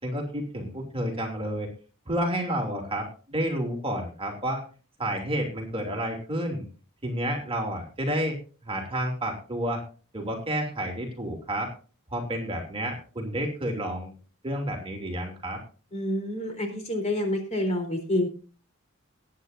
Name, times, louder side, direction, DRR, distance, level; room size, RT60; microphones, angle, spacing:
voice 1, 0.0-1.7 2.1-4.6 5.0-6.7 7.0-9.8 10.1-11.7 12.1-14.1 14.4-15.6, right 1 dB, 25° right, 1 dB, 2.9 m, -30 dB
voice 2, 15.9-18.3, left 1 dB, 35° left, 4 dB, 3.7 m, -28 dB
20.5 x 9.5 x 2.7 m, 0.36 s
head